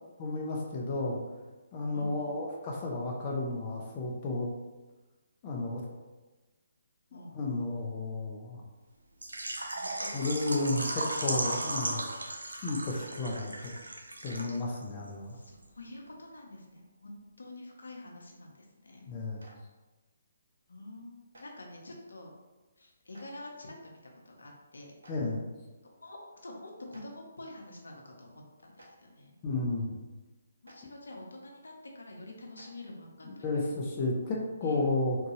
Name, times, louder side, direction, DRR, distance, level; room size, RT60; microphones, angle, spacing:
voice 1, 0.2-1.2 1.7-4.5 5.4-5.8 7.1-8.6 10.1-10.9 11.2-12.1 12.6-13.7 14.2-15.4 19.1-19.5 25.1-25.4 29.4-29.9 33.4-35.2, left 2 dB, 30° left, -1 dB, 0.5 m, -32 dB
voice 2, 1.9-2.4 7.1-7.3 9.7-10.1 10.5-11.0 15.3-19.1 20.7-22.3 22.8-24.9 25.8-29.3 30.6-33.8 34.6-34.8, left 1 dB, 75° left, 0 dB, 0.7 m, -47 dB
Water / Liquid, 9.2-14.8 15.1-15.2 15.6-15.7, right 1 dB, 80° right, 0.4 m, -36 dB
Clapping, 19.4-19.5 21.3-21.4 23.1-23.3 25.0-25.1 26.9-27.0 28.7-28.9 30.6-30.7 32.5-32.7, right 1 dB, 65° right, 0.8 m, -54 dB
3.8 x 2.2 x 3.0 m, 1.2 s
figure-of-eight pair, 140°, 0 cm